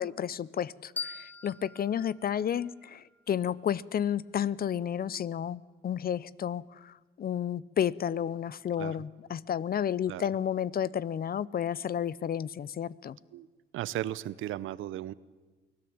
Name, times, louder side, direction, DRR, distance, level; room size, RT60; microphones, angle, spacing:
voice 1, 0.0-13.2, left 9 dB, 50° left, 21 dB, 0.7 m, -32 dB
sound 1, 1.0-3.8, left 4 dB, 10° left, 1.3 m, -43 dB
voice 2, 13.7-15.1, right 13 dB, 85° right, 18 dB, 0.8 m, -35 dB
24.0 x 17.5 x 8.7 m, 1.3 s
cardioid pair, 90°, 20 cm